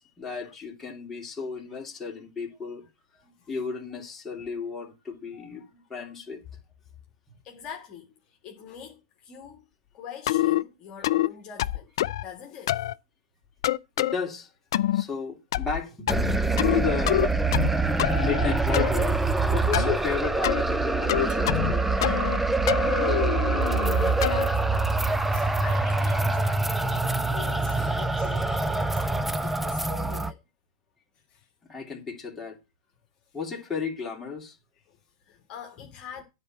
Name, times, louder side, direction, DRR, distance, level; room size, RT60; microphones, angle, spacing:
voice 1, 0.0-2.8 3.5-5.6 5.9-6.4 14.0-14.5 14.9-16.1 16.7-17.2 18.2-19.2 19.5-22.2 27.8-27.9 28.4-28.6 31.6-32.6 33.3-34.6, left 5 dB, 10° left, 2.8 m, -33 dB
voice 2, 3.1-3.5 4.4-4.8 5.3-6.1 7.4-9.6 9.9-11.9 12.2-12.8 23.6-30.4 31.1-31.5 33.3-33.4 34.9-36.2, left 7 dB, 30° left, 2.0 m, -44 dB
sound 1, 10.3-10.6 11.0-11.3 11.6-12.2 12.7-12.9 13.6-14.1 14.7-15.0 15.5-16.8 17.1-17.7 18.0-18.9 19.7-20.0 20.4-20.6 21.1-21.7 22.0-22.4 22.7-24.5, left 14 dB, 60° left, 0.5 m, -26 dB
sound 2, 16.1-30.3, right 3 dB, 5° right, 0.6 m, -25 dB
sound 3, 19.9-20.0 21.3-23.3 25.9-26.4 27.5-27.6, right 5 dB, 25° right, 1.9 m, -47 dB
9.9 x 4.4 x 7.5 m
hypercardioid pair, 120°, 3 cm